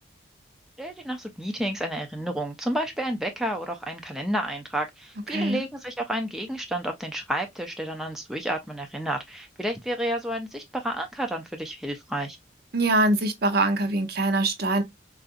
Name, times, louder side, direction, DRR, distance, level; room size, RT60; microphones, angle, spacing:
voice 1, 0.8-12.4, right 1 dB, ahead, 0.4 m, -30 dB
voice 2, 5.3-5.7 12.7-14.8, right 2 dB, 55° right, 0.6 m, -23 dB
3.7 x 2.4 x 2.4 m
head